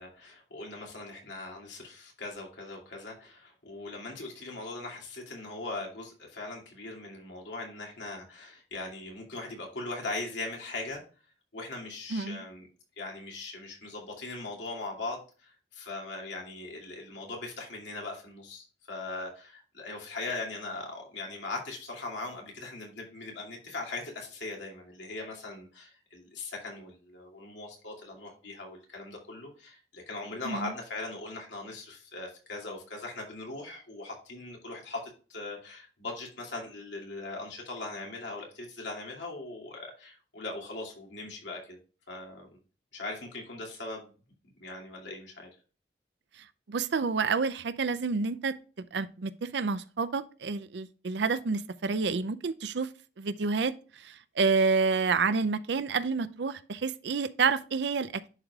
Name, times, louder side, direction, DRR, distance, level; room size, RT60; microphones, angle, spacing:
voice 1, 0.0-11.0 11.5-12.7 13.0-35.0 35.3-41.8 42.1-42.5 42.9-44.1 44.6-45.5, left 2 dB, 80° left, 2.7 m, -40 dB
voice 2, 12.1-12.4 30.4-30.7 46.7-52.9 53.2-53.7 54.0-58.3, right 4 dB, 75° right, 0.5 m, -29 dB
11.0 x 4.9 x 2.4 m
head